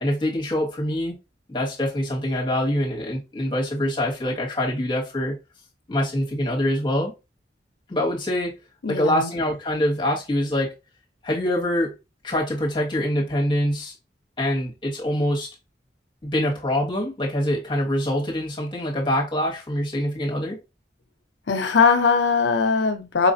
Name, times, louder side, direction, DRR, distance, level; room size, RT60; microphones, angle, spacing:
voice 1, 0.0-1.2 1.5-5.4 5.9-7.1 7.9-8.5 8.9-10.7 11.2-11.9 12.2-13.9 14.4-15.5 16.2-20.6, left 1 dB, 25° left, 1.1 m, -24 dB
voice 2, 8.8-9.3 21.5-23.3, left 5 dB, 80° left, 0.7 m, -20 dB
4.6 x 2.5 x 2.6 m
head